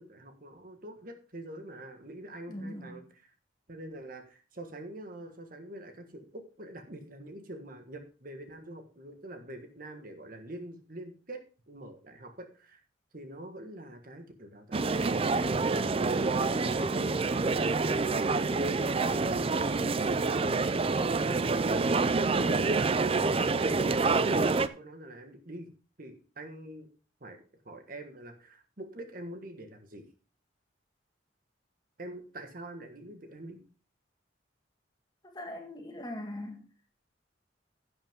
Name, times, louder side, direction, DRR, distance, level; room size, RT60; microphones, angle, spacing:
voice 1, 0.0-3.3 3.7-12.8 13.1-20.7 22.1-25.7 26.0-26.9 27.2-27.4 27.6-30.0 32.0-33.6, right 1 dB, 50° right, 1.5 m, -45 dB
voice 2, 2.5-3.0 35.3-36.7, left 1 dB, 20° left, 1.7 m, -40 dB
sound 1, 14.7-24.7, right 3 dB, 30° right, 0.4 m, -27 dB
11.0 x 8.8 x 3.6 m
head